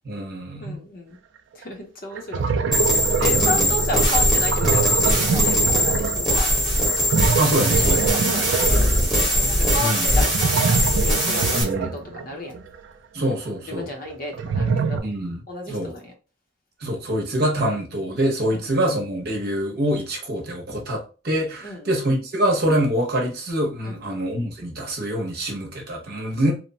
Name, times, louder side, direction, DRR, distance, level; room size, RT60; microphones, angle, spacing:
voice 1, 0.0-0.8 3.5-3.7 7.4-8.1 9.8-10.1 11.5-11.9 13.1-13.9 15.0-15.4 15.7-15.9 16.8-26.5, right 1 dB, 55° right, 0.8 m, -25 dB
voice 2, 0.6-1.2 1.5-6.5 7.8-12.5 13.7-15.1 15.5-16.1 18.5-18.7 21.6-21.9 23.8-24.0, left 1 dB, 50° left, 0.7 m, -33 dB
sound 1, 1.6-1.7 2.1-12.7 14.1-15.0, right 5 dB, 75° right, 0.3 m, -25 dB
sound 2, 2.7-11.6, equal, ahead, 0.9 m, -20 dB
2.9 x 2.1 x 2.6 m
head